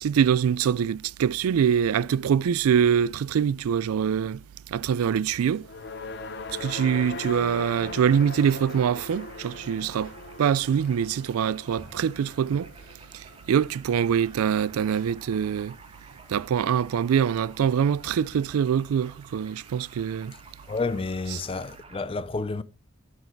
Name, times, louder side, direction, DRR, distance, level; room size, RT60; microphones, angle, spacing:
voice 1, 0.0-4.4 4.7-5.6 6.6-10.1 10.4-12.7 13.1-15.7 16.3-20.3 21.3-21.4, right 8 dB, 90° right, 0.3 m, -24 dB
Whispering, 4.9-15.8 16.1-16.2 16.4-16.8, right 1 dB, 5° right, 4.0 m, -57 dB
sound 1, 5.6-14.0, left 2 dB, 50° left, 0.8 m, -40 dB
sound 2, 7.5-22.0, right 3 dB, 25° right, 1.5 m, -52 dB
voice 2, 20.7-22.6, left 3 dB, 25° left, 0.4 m, -30 dB
11.0 x 4.8 x 4.4 m
head